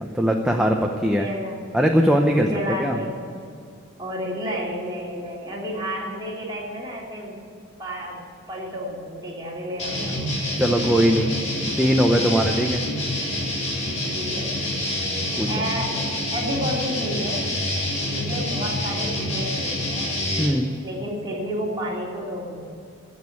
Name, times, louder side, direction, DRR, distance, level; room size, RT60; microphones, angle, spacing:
voice 1, 0.1-1.3 1.7-2.5 2.8-3.0 10.6-11.3 11.8-12.8 15.4-15.5 20.4-20.7, equal, 5° right, 1 dB, 0.7 m, -20 dB
voice 2, 1.2-1.5 2.3-3.2 4.0-7.4 7.8-8.2 8.5-10.2 11.3-11.5 14.0-14.6 15.5-16.1 16.3-17.5 18.1-20.2 20.8-22.6, equal, 20° right, -4 dB, 3.2 m, -31 dB
sound 1, 9.8-20.5, left 1 dB, 35° left, 3.4 m, -27 dB
16.0 x 6.4 x 10.0 m, 2.4 s
head